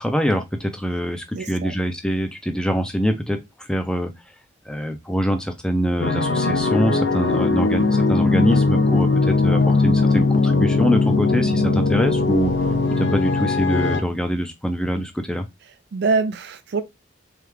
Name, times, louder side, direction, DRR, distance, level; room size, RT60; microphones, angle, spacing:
voice 1, 0.0-4.1 4.7-12.5 13.0-15.4, equal, 5° left, 0.5 m, -24 dB
voice 2, 1.4-1.7 15.9-16.8, right 4 dB, 55° right, 0.4 m, -24 dB
sound 1, 6.0-14.0, left 3 dB, 65° left, 0.5 m, -19 dB
3.6 x 3.4 x 3.2 m
head